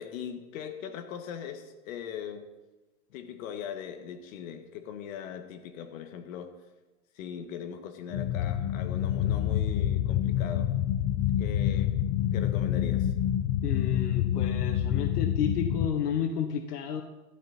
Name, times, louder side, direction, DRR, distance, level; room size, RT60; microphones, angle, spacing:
voice 1, 0.0-2.5 3.1-6.5 7.2-10.7 11.4-12.0 12.3-13.1, left 8 dB, 55° left, 7 dB, 1.8 m, -40 dB
sound 1, 8.1-15.9, left 11 dB, 35° left, 0.9 m, -27 dB
voice 2, 13.6-17.0, left 7 dB, 80° left, 7 dB, 1.3 m, -31 dB
13.5 x 12.0 x 4.3 m, 1.1 s
hypercardioid pair, 140°, 46 cm